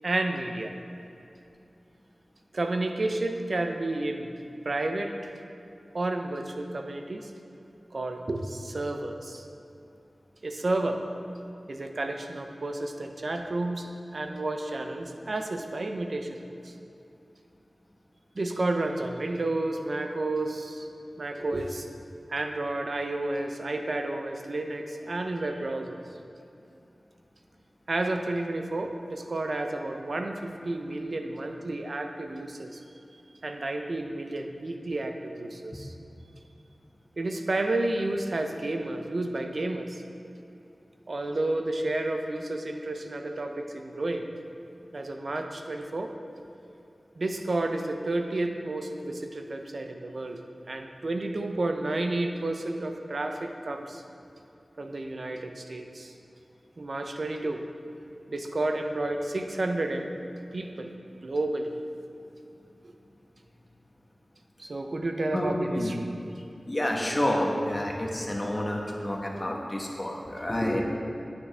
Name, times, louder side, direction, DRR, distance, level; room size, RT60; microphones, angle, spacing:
voice 1, 0.0-0.7 2.5-4.3 4.6-5.4 5.9-7.3 7.9-9.4 10.4-11.0 11.7-16.7 18.3-20.9 21.2-21.9 22.3-26.0 27.9-32.8 33.4-35.9 37.2-40.0 41.1-44.3 44.9-46.2 47.2-50.4 50.7-54.0 54.8-56.1 56.8-57.6 58.3-60.1 60.5-60.9 61.2-61.7 64.6-66.1, right 2 dB, 65° right, 5 dB, 0.7 m, -31 dB
voice 2, 65.3-65.9 66.6-70.8, left 1 dB, 30° left, -1 dB, 1.2 m, -29 dB
9.5 x 9.5 x 3.4 m, 2.7 s
wide cardioid pair, 70°, 0 cm